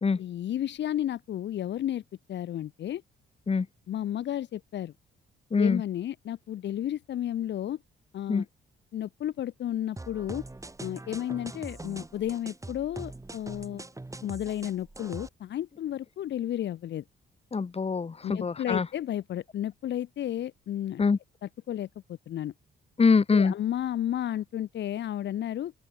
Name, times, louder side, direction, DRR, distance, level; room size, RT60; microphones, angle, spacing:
voice 1, 0.2-2.0 2.3-3.0 3.9-4.9 5.6-7.8 8.1-8.4 8.9-10.4 10.8-13.8 14.2-17.0 18.2-21.0 21.7-22.5 23.3-25.7, left 11 dB, 65° left, 1.0 m, -32 dB
voice 2, 5.5-5.8 8.3-8.5 17.5-18.9 21.0-21.2 23.0-23.5, left 5 dB, 30° left, 2.1 m, -24 dB
sound 1, 10.0-15.3, right 2 dB, 15° right, 6.5 m, -42 dB
open air
cardioid pair, 90°, 20 cm